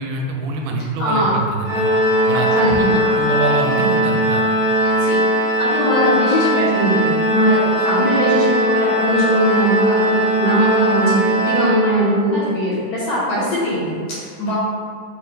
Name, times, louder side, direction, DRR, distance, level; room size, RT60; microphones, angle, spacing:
voice 1, 0.0-1.9 2.3-4.5, right 3 dB, 90° right, 1 dB, 2.0 m, -25 dB
voice 2, 1.0-1.4 2.3-3.2 5.0-5.2 5.6-14.5, equal, 70° left, -8 dB, 1.7 m, -20 dB
Organ, 1.7-12.4, equal, 85° left, 2.1 m, -19 dB
4.9 x 2.1 x 3.1 m, 2.1 s
omnidirectional pair, 3.4 m